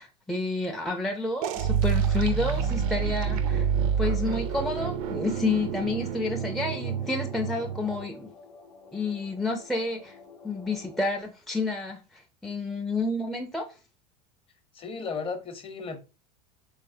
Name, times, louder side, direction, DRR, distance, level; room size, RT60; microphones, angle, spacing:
voice 1, 0.0-3.7 4.0-8.3 8.9-10.2 10.4-13.6, left 3 dB, ahead, 0.4 m, -30 dB
sound 1, 1.4-8.0, right 7 dB, 60° right, 0.5 m, -28 dB
sound 2, 1.6-11.1, left 4 dB, 80° left, 0.8 m, -48 dB
voice 2, 14.7-16.0, left 4 dB, 25° left, 0.8 m, -34 dB
3.2 x 3.2 x 2.6 m
hypercardioid pair, 85°, 21 cm